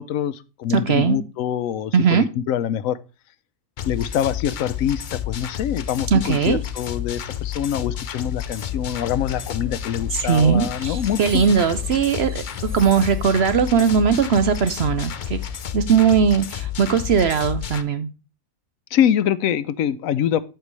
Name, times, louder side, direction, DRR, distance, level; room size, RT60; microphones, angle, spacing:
voice 1, 0.0-3.0 3.8-11.2 18.9-20.4, left 9 dB, 80° left, 1.0 m, -24 dB
voice 2, 0.7-1.2 1.9-2.3 6.1-6.6 10.1-15.4 15.7-18.1, right 7 dB, 60° right, 0.8 m, -19 dB
sound 1, 3.8-17.8, left 10 dB, 55° left, 0.6 m, -30 dB
Train, 8.4-16.4, equal, 25° right, 1.8 m, -42 dB
13.5 x 4.5 x 3.1 m
omnidirectional pair, 1.4 m